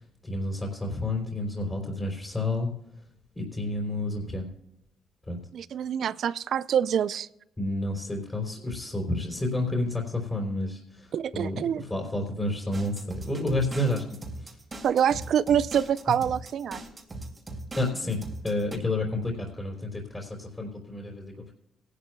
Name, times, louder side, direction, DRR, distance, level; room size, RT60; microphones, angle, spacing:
voice 1, 0.0-2.7 3.3-4.5 5.2-5.4 7.6-14.6 17.8-21.5, left 1 dB, 20° left, -2 dB, 3.6 m, -30 dB
voice 2, 5.5-7.3 11.1-11.8 14.8-16.8, right 9 dB, 65° right, 18 dB, 0.4 m, -26 dB
sound 1, 12.7-18.8, right 2 dB, 25° right, 2.4 m, -40 dB
19.0 x 11.5 x 2.3 m, 0.82 s
cardioid pair, 90°, 0 cm